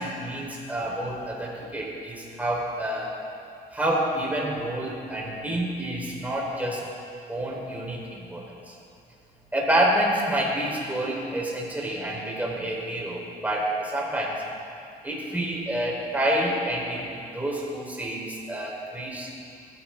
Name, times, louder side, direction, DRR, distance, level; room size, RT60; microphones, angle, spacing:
voice 1, 0.0-3.2 3.7-6.8 7.3-8.7 9.5-14.4 15.0-19.3, right 1 dB, 10° right, -3 dB, 4.4 m, -28 dB
20.5 x 16.0 x 3.9 m, 2.4 s
cardioid pair, 110°, 17 cm